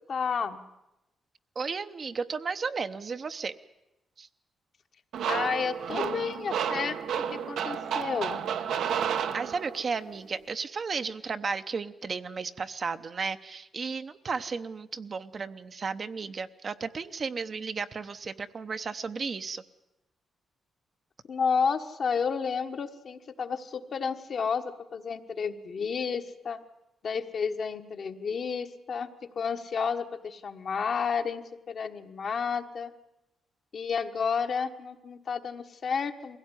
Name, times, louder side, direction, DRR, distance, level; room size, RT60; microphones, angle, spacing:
voice 1, 0.1-0.6 5.3-7.0 7.3-8.4 21.3-26.6 27.0-32.9 33.7-36.4, left 6 dB, 50° left, 6 dB, 1.3 m, -31 dB
voice 2, 1.6-3.5 4.2-4.3 8.8-9.0 9.3-19.6, right 5 dB, 40° right, 10 dB, 0.8 m, -34 dB
sound 1, 5.1-9.9, right 8 dB, 85° right, 1.2 m, -31 dB
22.5 x 16.5 x 9.8 m, 0.93 s
cardioid pair, 135°, 0 cm